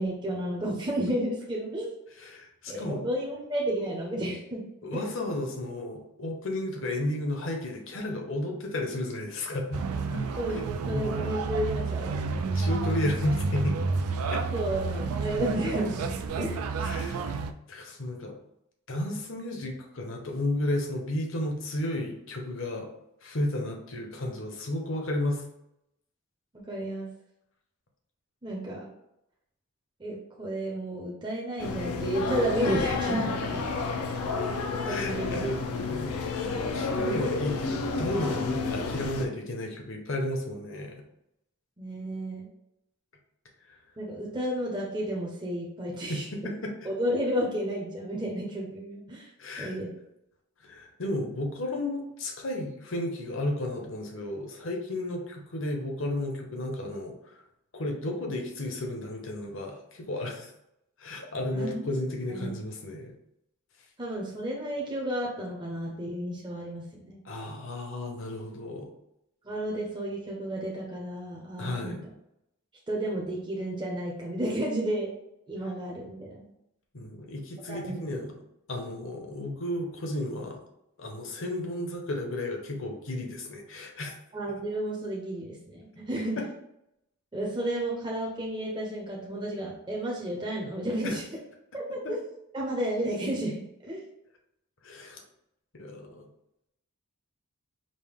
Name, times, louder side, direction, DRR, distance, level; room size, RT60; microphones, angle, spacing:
voice 1, 0.0-1.9 2.7-4.6 4.9-5.1 10.4-12.1 14.5-16.6 26.7-27.1 28.4-28.9 30.0-33.7 34.9-35.5 41.8-42.5 44.0-46.2 46.8-49.3 49.6-49.9 61.5-61.9 62.3-62.5 64.0-67.2 69.4-72.0 72.9-75.2 75.5-76.5 77.7-78.2 84.3-86.4 87.3-91.2 91.7-92.2 92.5-94.0, right 1 dB, 20° right, -3 dB, 0.6 m, -32 dB
voice 2, 2.2-3.0 4.8-9.8 10.1-10.2 10.9-11.3 12.2-13.8 14.3-14.4 16.8-17.2 17.7-18.3 18.9-22.9 23.2-25.4 34.8-41.0 43.7-43.8 46.1-46.7 49.4-49.7 50.6-57.4 57.7-60.5 61.0-63.1 67.2-68.9 71.6-72.0 76.9-78.3 78.7-80.6 81.0-84.1 86.4-86.5 91.0-91.2 94.8-95.2 95.7-96.3, left 1 dB, 60° left, 2 dB, 0.8 m, -33 dB
sound 1, 9.7-17.5, right 4 dB, 85° right, 0.4 m, -30 dB
sound 2, 31.6-39.3, left 4 dB, 85° left, 0.6 m, -30 dB
5.2 x 2.1 x 3.5 m, 0.82 s
head